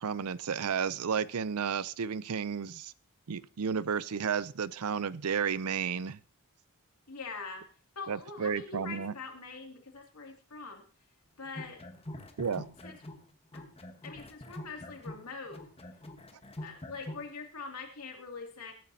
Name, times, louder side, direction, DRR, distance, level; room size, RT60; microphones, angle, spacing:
voice 1, 0.0-2.9 3.3-6.2 8.1-9.1 12.4-12.7, right 6 dB, 75° right, 18 dB, 0.5 m, -32 dB
voice 2, 7.1-7.6 7.9-10.8 11.4-11.8 12.8-13.0 13.5-13.6 14.0-15.6 16.6-18.7, left 4 dB, 85° left, 2 dB, 2.6 m, -43 dB
sound 1, 11.5-13.3 13.5-17.3, left 1 dB, 25° left, 1.3 m, -44 dB
20.5 x 9.3 x 2.8 m, 0.39 s
head